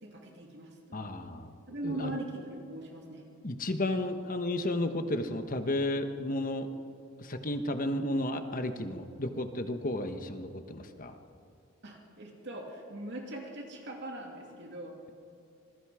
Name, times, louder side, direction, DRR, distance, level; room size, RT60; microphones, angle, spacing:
voice 1, 0.0-1.2 1.7-3.2 11.8-14.9, right 1 dB, 55° right, 0 dB, 2.8 m, -41 dB
voice 2, 0.9-1.5 1.8-2.2 3.4-6.7 7.2-11.1, left 1 dB, 40° left, 7 dB, 1.3 m, -33 dB
26.5 x 21.5 x 5.0 m, 2.5 s
head